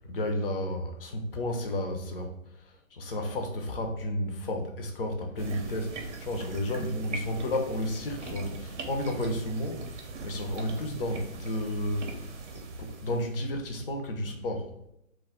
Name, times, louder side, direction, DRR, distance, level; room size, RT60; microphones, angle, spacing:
voice 1, 0.0-14.7, left 1 dB, 45° left, 3 dB, 0.5 m, -32 dB
sound 1, 5.4-13.5, right 3 dB, 60° right, 0.6 m, -41 dB
2.2 x 2.0 x 3.5 m, 0.79 s
hypercardioid pair, 145°, 41 cm